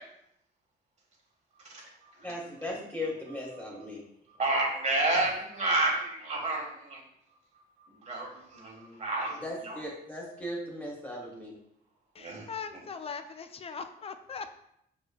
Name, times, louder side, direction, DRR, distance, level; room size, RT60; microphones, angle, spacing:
voice 1, 2.2-4.0 9.4-11.5, left 1 dB, 10° left, -3 dB, 1.6 m, -37 dB
voice 2, 4.4-7.0 8.0-9.8 12.2-12.4, right 2 dB, 45° right, -1 dB, 1.4 m, -30 dB
voice 3, 12.2-14.6, left 5 dB, 35° left, 8 dB, 0.4 m, -40 dB
6.1 x 3.2 x 2.3 m, 0.76 s
cardioid pair, 95°, 17 cm